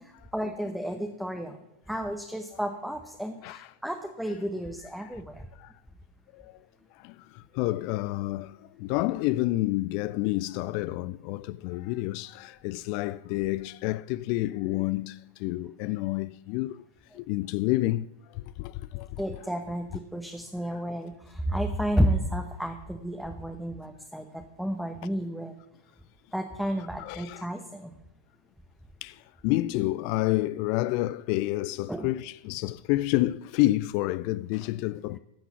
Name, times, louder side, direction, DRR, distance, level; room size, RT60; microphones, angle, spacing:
voice 1, 0.0-1.6 1.9-5.5 19.2-25.5 26.3-28.0 31.9-32.1, equal, ahead, 0.9 m, -32 dB
voice 2, 7.0-16.8 17.1-19.1 20.7-20.8 27.0-27.4 29.0-35.2, left 17 dB, 45° left, 0.3 m, -29 dB
15.5 x 6.0 x 7.0 m
figure-of-eight pair, 90°, 0 cm